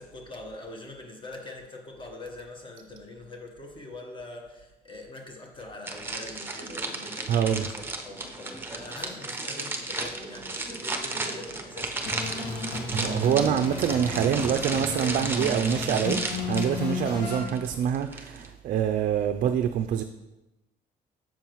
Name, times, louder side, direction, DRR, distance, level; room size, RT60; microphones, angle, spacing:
voice 1, 0.0-12.7, left 2 dB, 30° left, 1.2 m, -43 dB
sound 1, 5.9-18.5, right 2 dB, 15° right, 0.8 m, -34 dB
voice 2, 7.3-7.7 12.9-20.0, right 9 dB, 55° right, 0.4 m, -26 dB
sound 2, 12.1-17.4, left 3 dB, 70° left, 1.8 m, -33 dB
7.3 x 7.1 x 3.0 m
cardioid pair, 110°, 17 cm